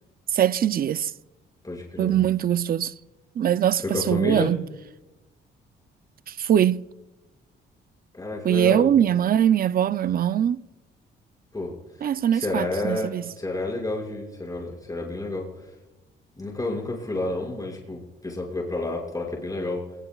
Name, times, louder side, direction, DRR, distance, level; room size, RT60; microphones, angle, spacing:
voice 1, 0.3-1.1 2.0-2.9 3.4-4.6 6.3-6.9 8.4-10.6 12.0-13.2, right 10 dB, 45° right, 0.5 m, -22 dB
voice 2, 1.6-2.2 3.8-4.5 8.1-9.0 11.5-11.7 12.3-15.5 16.4-19.8, left 2 dB, 20° left, 6.0 m, -30 dB
27.5 x 20.0 x 2.4 m
cardioid pair, 90°, 20 cm